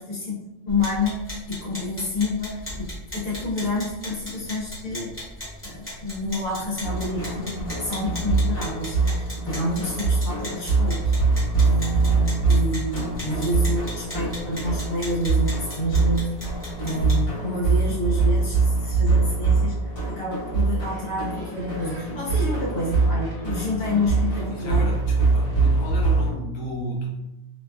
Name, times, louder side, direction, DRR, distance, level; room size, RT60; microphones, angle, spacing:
voice 1, 0.0-5.2 5.6-11.1 11.6-25.0, left 1 dB, 85° left, -6 dB, 1.5 m, -29 dB
sound 1, 0.7-17.3, equal, 10° left, 0.9 m, -38 dB
sound 2, 6.8-26.3, right 3 dB, 55° left, 1.8 m, -23 dB
Gull seagull, 20.8-25.8, right 1 dB, 25° right, 0.7 m, -50 dB
voice 2, 24.5-27.2, right 1 dB, 35° left, -3 dB, 0.4 m, -33 dB
3.2 x 2.4 x 2.3 m, 0.93 s
omnidirectional pair, 1.3 m